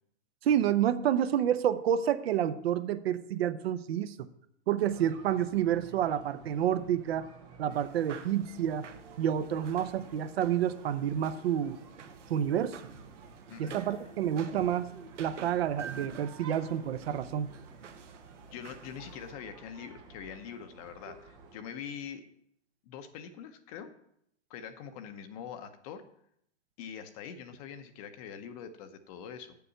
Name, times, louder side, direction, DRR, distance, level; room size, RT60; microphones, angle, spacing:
voice 1, 0.4-4.3 4.7-7.3 7.6-8.8 9.2-11.8 12.3-12.8 13.6-14.9 15.2-17.5, right 10 dB, 55° right, 12 dB, 0.7 m, -29 dB
sound 1, 4.8-21.6, right 4 dB, 15° right, 0.4 m, -52 dB
sound 2, 7.7-19.3, right 7 dB, 85° right, 1.2 m, -49 dB
voice 2, 13.5-13.8 18.5-22.2 22.8-23.9 24.5-26.0 26.8-29.5, left 8 dB, 30° left, 9 dB, 0.8 m, -44 dB
6.9 x 6.8 x 7.6 m, 0.73 s
hypercardioid pair, 145°, 36 cm